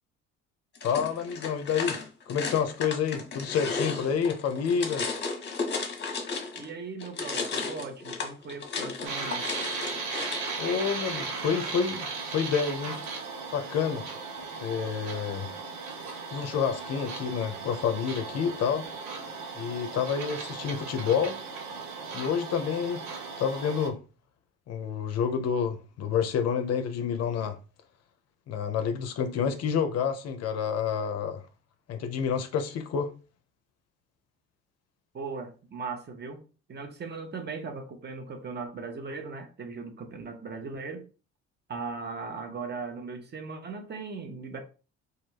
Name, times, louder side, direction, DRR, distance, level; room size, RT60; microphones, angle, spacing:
voice 1, 0.8-2.0 2.3-5.0 10.6-13.0 13.5-14.0 14.6-15.5 16.3-18.9 19.6-21.4 22.1-23.0 23.4-24.0 24.7-27.6 28.5-31.4 31.9-33.1, left 7 dB, 50° left, 0.5 m, -28 dB
sound 1, 0.8-6.7 7.0-10.5, left 4 dB, 35° left, 0.8 m, -34 dB
voice 2, 6.5-9.5 35.1-36.4 36.7-41.1 41.7-44.6, right 4 dB, 30° right, 0.7 m, -38 dB
sound 2, 9.0-23.9, right 4 dB, 65° right, 0.7 m, -37 dB
2.3 x 2.0 x 3.2 m
hypercardioid pair, 55°, 33 cm